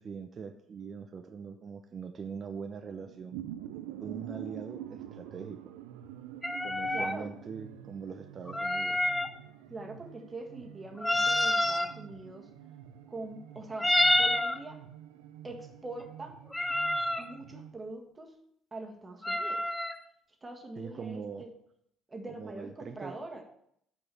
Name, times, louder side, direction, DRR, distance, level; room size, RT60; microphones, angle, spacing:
voice 1, 0.0-3.4 4.0-5.6 6.6-9.0 20.8-21.4 22.3-23.1, right 6 dB, 45° right, 7 dB, 0.8 m, -42 dB
sound 1, 3.0-17.7, right 11 dB, 90° right, 0.6 m, -47 dB
sound 2, 6.4-7.2 8.5-9.3 11.0-11.9 13.8-14.6 16.5-17.3 19.2-20.0, left 1 dB, 15° left, 0.7 m, -28 dB
voice 2, 6.9-7.3 9.7-12.5 13.1-13.9 14.1-14.8 15.4-16.3 17.2-18.3 18.7-19.7 20.4-21.5 22.1-23.4, right 2 dB, 25° right, 3 dB, 1.8 m, -43 dB
6.1 x 5.9 x 7.0 m, 0.72 s
supercardioid pair, 65°, 0 cm